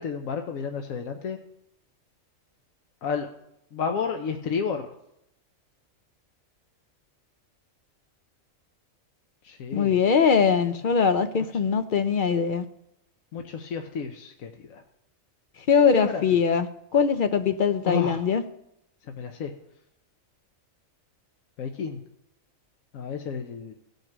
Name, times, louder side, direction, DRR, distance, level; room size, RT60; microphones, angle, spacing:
voice 1, 0.0-1.4 3.0-3.3 3.7-4.9 9.4-10.0 13.3-14.8 15.9-16.4 17.9-18.2 19.2-19.5 21.6-22.0 22.9-23.7, left 6 dB, 80° left, 1.2 m, -31 dB
voice 2, 9.7-12.6 15.7-18.4, left 6 dB, 60° left, 0.5 m, -22 dB
16.0 x 5.4 x 6.0 m
omnidirectional pair, 1.4 m